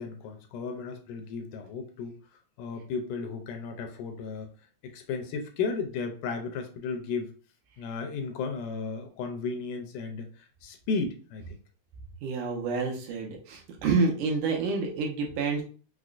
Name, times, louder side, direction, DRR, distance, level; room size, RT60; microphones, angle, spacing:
voice 1, 0.0-2.1 2.6-4.5 4.8-7.3 7.8-10.3 10.6-11.6, left 4 dB, 80° left, 5 dB, 2.0 m, -34 dB
voice 2, 12.2-15.6, right 4 dB, 80° right, 1 dB, 2.2 m, -28 dB
5.8 x 2.0 x 2.4 m, 0.38 s
omnidirectional pair, 3.8 m